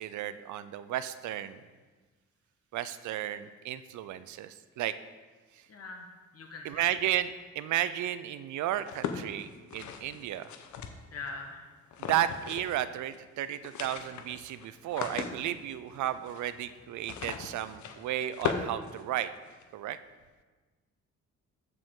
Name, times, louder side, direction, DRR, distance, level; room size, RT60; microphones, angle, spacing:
voice 1, 0.0-1.6 2.7-4.9 6.6-10.4 12.0-19.3 19.7-20.0, right 12 dB, 75° right, 13 dB, 0.5 m, -33 dB
voice 2, 5.7-7.0 11.1-11.7, left 3 dB, 50° left, 2 dB, 1.2 m, -43 dB
sound 1, 8.8-11.3 11.9-12.8 13.1-13.2 13.5-19.6, left 7 dB, 70° left, 0.9 m, -39 dB
14.0 x 5.1 x 3.7 m, 1.3 s
cardioid pair, 90°, 30 cm